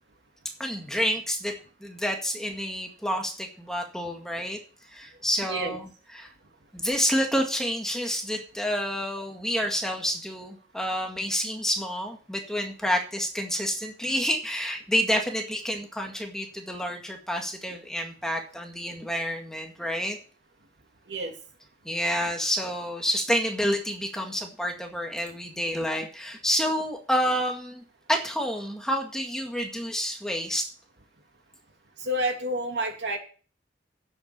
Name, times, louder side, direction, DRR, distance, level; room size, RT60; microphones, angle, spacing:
voice 1, 0.6-1.5 1.8-4.6 4.9-6.3 6.7-20.2 21.9-27.8 28.1-30.7, equal, 5° left, 2 dB, 1.9 m, -29 dB
voice 2, 32.0-33.2, right 1 dB, 75° right, 3 dB, 3.0 m, -29 dB
10.5 x 8.2 x 6.8 m, 0.39 s
head